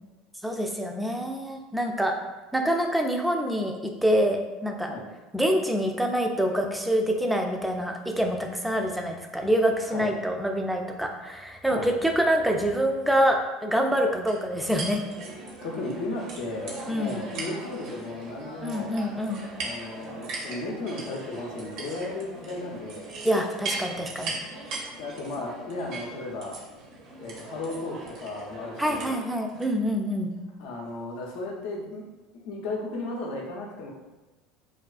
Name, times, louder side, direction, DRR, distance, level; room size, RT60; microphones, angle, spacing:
voice 1, 0.4-2.2 2.5-4.9 5.3-15.0 16.9-17.2 18.6-19.4 23.2-24.4 28.8-30.3, equal, 5° right, 2 dB, 0.3 m, -26 dB
sound 1, 14.3-29.7, right 2 dB, 60° right, 0.6 m, -39 dB
voice 2, 15.6-18.9 19.6-23.1 25.0-26.6 27.2-29.2 30.6-32.1 32.3-33.9, left 2 dB, 70° left, -1 dB, 0.5 m, -35 dB
2.3 x 2.2 x 2.4 m, 1.2 s
hypercardioid pair, 85°, 0 cm